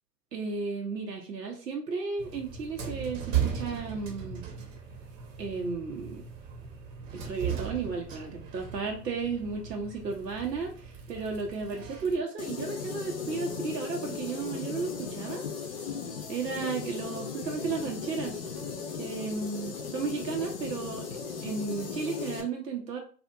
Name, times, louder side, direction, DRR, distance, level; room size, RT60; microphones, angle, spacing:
voice 1, 0.3-4.4 5.4-6.2 7.1-15.5 16.3-18.4 19.0-21.0 21.4-23.0, right 4 dB, 80° right, 1 dB, 0.8 m, -34 dB
sound 1, 2.2-12.2, right 8 dB, 50° right, 0.9 m, -37 dB
sound 2, 12.4-22.4, left 5 dB, 40° left, 0.5 m, -37 dB
2.8 x 2.4 x 2.2 m, 0.40 s
figure-of-eight pair, 105°, 49 cm